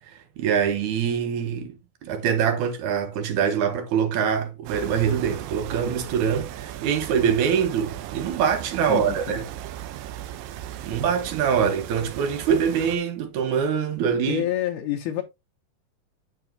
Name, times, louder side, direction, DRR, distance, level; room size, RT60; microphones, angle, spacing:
voice 1, 0.4-1.8 2.0-9.5 10.8-14.4, right 7 dB, 65° right, 2.5 m, -24 dB
sound 1, 4.7-13.0, right 12 dB, 80° right, 2.4 m, -37 dB
voice 2, 8.9-9.4 14.3-15.2, left 12 dB, 70° left, 2.1 m, -28 dB
8.5 x 7.0 x 2.7 m
omnidirectional pair, 3.9 m